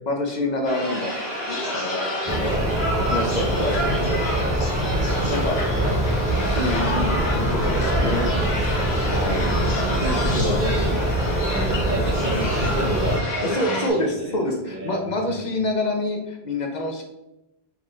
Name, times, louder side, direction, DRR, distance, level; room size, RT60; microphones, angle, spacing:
voice 1, 0.1-1.1 1.5-2.6 3.1-4.2 5.2-5.6 6.5-8.3 9.0-9.6 10.0-10.2 13.4-17.0, left 1 dB, 50° left, 2 dB, 0.7 m, -27 dB
sound 1, 0.6-13.9, left 1 dB, 75° left, 1.1 m, -30 dB
sound 2, 0.6-7.6, right 3 dB, 85° right, 1.0 m, -39 dB
sound 3, 2.3-13.2, right 1 dB, 10° right, 0.3 m, -24 dB
voice 2, 5.8-7.4 8.5-15.6, equal, 50° right, -4 dB, 0.9 m, -31 dB
4.1 x 3.1 x 3.1 m, 0.93 s
omnidirectional pair, 1.1 m